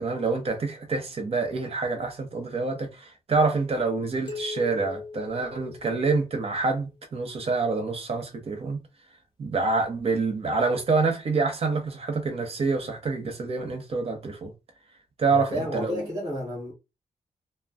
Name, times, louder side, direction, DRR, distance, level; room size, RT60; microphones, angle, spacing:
voice 1, 0.0-8.8 9.4-14.5 15.2-16.1, right 4 dB, 50° right, 0.8 m, -27 dB
sound 1, 4.3-6.7, left 4 dB, 35° left, 0.7 m, -39 dB
voice 2, 15.3-16.7, equal, 30° right, 1.1 m, -32 dB
2.5 x 2.2 x 3.3 m
wide cardioid pair, 170°, 13 cm